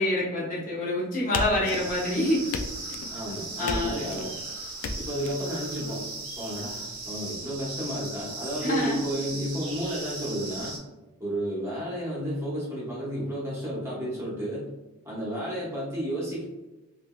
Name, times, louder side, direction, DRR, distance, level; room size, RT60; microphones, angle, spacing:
voice 1, 0.0-2.4 3.6-3.9 8.6-9.0, left 1 dB, 40° left, -6 dB, 0.7 m, -26 dB
sound 1, 1.3-2.1 2.5-3.1 3.7-4.3 4.8-5.3, left 3 dB, 65° left, 0.3 m, -33 dB
sound 2, 1.6-10.8, right 2 dB, 85° right, 0.8 m, -38 dB
voice 2, 3.1-4.4 5.0-10.8 11.2-14.7 15.0-16.4, equal, 10° right, -8 dB, 1.0 m, -32 dB
3.4 x 2.7 x 2.3 m, 1.1 s
head